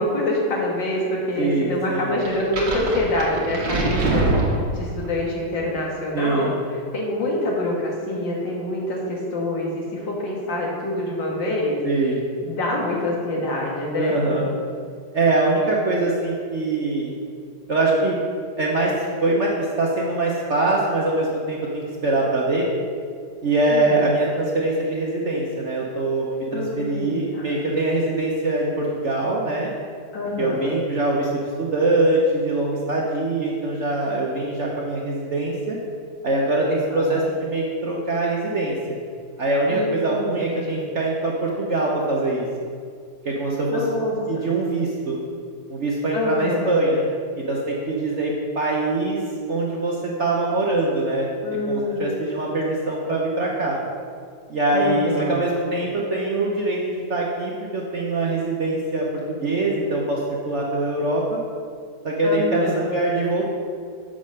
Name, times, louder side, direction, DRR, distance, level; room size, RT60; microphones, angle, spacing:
voice 1, 0.0-6.5 6.9-11.8 12.4-14.2 23.7-24.1 26.5-27.6 30.1-30.7 36.8-37.2 39.7-40.8 43.7-44.5 46.1-46.8 51.4-52.1 54.7-55.4 62.2-62.9, left 1 dB, 70° left, -2 dB, 2.1 m, -26 dB
voice 2, 1.4-2.1 6.1-6.6 11.8-12.2 14.0-14.6 15.1-17.1 17.7-18.2 18.6-18.9 19.2-22.7 23.4-29.7 30.4-35.8 36.2-39.0 39.4-42.4 43.2-43.8 44.3-45.2 45.7-47.0 47.5-49.2 49.5-51.3 51.7-53.8 54.5-60.2 60.4-61.4 62.0-63.4, right 2 dB, 50° right, -3 dB, 0.9 m, -23 dB
sound 1, 2.3-5.1, right 2 dB, 65° right, 1.8 m, -23 dB
7.6 x 5.0 x 6.3 m, 2.2 s
omnidirectional pair, 2.1 m